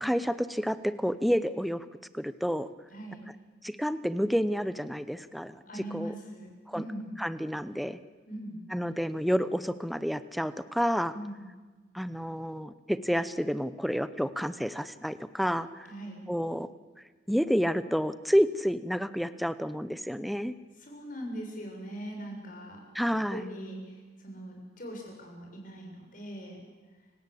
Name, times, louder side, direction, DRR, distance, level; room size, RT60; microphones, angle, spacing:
voice 1, 0.0-1.9 2.1-2.7 3.6-5.6 5.9-6.1 6.7-6.8 7.2-8.0 8.7-11.1 11.9-15.9 16.3-16.7 17.3-20.5 22.9-23.4, equal, ahead, 13 dB, 0.8 m, -29 dB
voice 2, 2.9-3.2 5.7-7.1 8.3-8.6 11.1-11.4 15.9-16.2 20.8-22.8 23.3-26.6, right 1 dB, 45° left, 1 dB, 7.2 m, -41 dB
29.0 x 17.5 x 8.5 m, 1.3 s
head